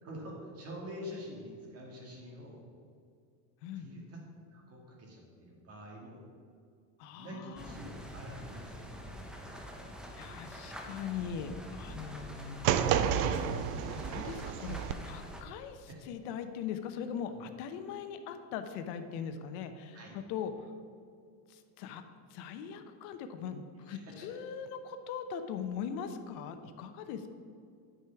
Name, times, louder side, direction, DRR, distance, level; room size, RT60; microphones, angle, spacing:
voice 1, 0.0-2.6 3.8-4.2 4.5-6.2 7.2-9.5 15.9-16.0 17.3-17.4 19.9-20.2 23.9-24.3, equal, 30° right, -1 dB, 2.1 m, -46 dB
voice 2, 7.0-7.8 10.2-13.3 13.9-20.5 21.5-22.0 22.3-27.3, left 7 dB, 70° left, 8 dB, 0.8 m, -41 dB
sound 1, 7.6-15.4, equal, ahead, 0.4 m, -46 dB
sound 2, 12.6-14.9, right 9 dB, 55° right, 0.6 m, -30 dB
10.0 x 4.9 x 5.8 m, 2.3 s
cardioid pair, 150°, 45 cm